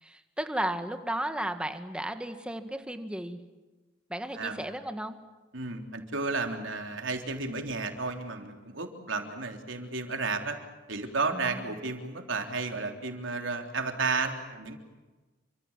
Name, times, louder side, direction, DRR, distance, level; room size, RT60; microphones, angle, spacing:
voice 1, 0.0-3.4 4.1-5.2 11.3-11.7, right 1 dB, 5° right, 7 dB, 1.7 m, -34 dB
voice 2, 5.5-10.6 10.9-14.8, right 3 dB, 85° right, 4 dB, 3.6 m, -32 dB
28.5 x 25.5 x 7.5 m, 1.2 s
head